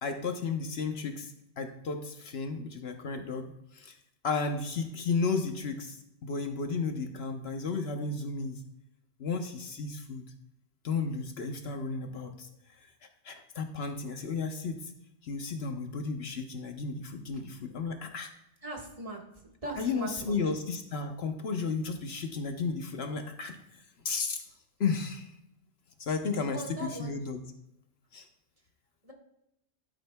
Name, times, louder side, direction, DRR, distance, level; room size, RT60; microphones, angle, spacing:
voice 1, 0.0-4.0 4.2-8.6 9.2-10.2 10.8-12.5 13.2-14.9 15.2-18.3 19.7-23.6 24.0-24.4 24.8-25.3 26.0-27.4 28.1-28.3, left 4 dB, 65° left, 6 dB, 1.1 m, -33 dB
voice 2, 18.6-19.2 19.6-20.5 26.3-27.2 29.0-29.1, right 2 dB, 30° right, -1 dB, 1.6 m, -40 dB
12.0 x 10.0 x 2.2 m, 0.84 s
omnidirectional pair, 1.2 m